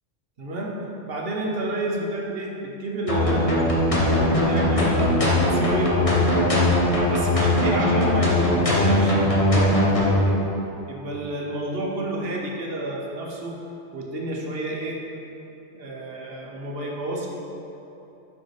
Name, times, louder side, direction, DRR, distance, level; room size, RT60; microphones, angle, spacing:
voice 1, 0.4-0.8 1.1-5.2 5.5-6.5 7.1-10.4 10.9-13.6 13.9-15.0 15.7-17.3, right 1 dB, 55° right, -1 dB, 1.1 m, -30 dB
sound 1, 3.1-10.1, left 1 dB, 30° left, 1.2 m, -20 dB
6.6 x 5.8 x 4.8 m, 3.0 s
omnidirectional pair, 1.2 m